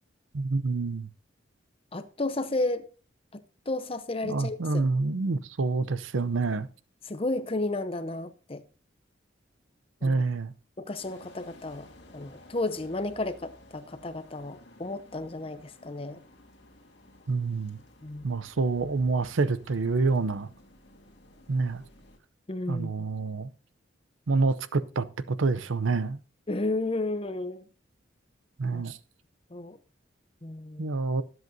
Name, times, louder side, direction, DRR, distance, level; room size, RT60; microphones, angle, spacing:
voice 1, 0.3-1.1 4.2-6.7 10.0-10.5 17.3-17.8 18.2-20.5 21.5-21.8 22.7-23.5 24.3-26.2 28.6-29.0 30.8-31.2, right 3 dB, 85° right, 0.6 m, -27 dB
voice 2, 1.9-2.8 3.3-3.4 3.7-4.8 7.0-8.6 10.0-10.2 10.8-11.9 12.1-16.2 18.0-18.2 22.5-23.1 26.5-27.7 28.7-28.8 29.5-29.8 30.4-31.0, left 2 dB, 30° left, 0.7 m, -32 dB
sound 1, 11.0-22.2, left 1 dB, 60° left, 2.1 m, -54 dB
20.0 x 7.9 x 2.7 m
head